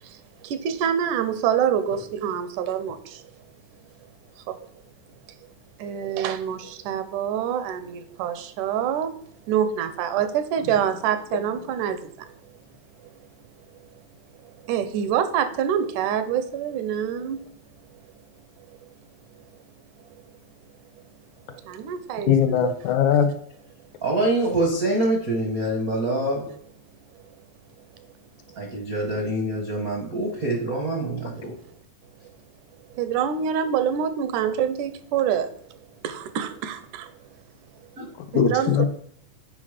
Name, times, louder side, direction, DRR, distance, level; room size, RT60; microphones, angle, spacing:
voice 1, 0.0-3.2 4.5-4.7 5.8-9.2 9.5-12.3 14.4-17.4 18.7-18.8 21.5-22.7 32.9-35.5 36.0-37.1 38.3-38.9, right 9 dB, 85° right, 2.1 m, -26 dB
voice 2, 22.3-23.3 38.3-38.9, left 8 dB, 80° left, 1.9 m, -20 dB
voice 3, 24.0-26.4 28.6-31.6 38.0-38.1, right 1 dB, 70° right, 0.8 m, -25 dB
7.7 x 5.0 x 4.9 m
omnidirectional pair, 3.6 m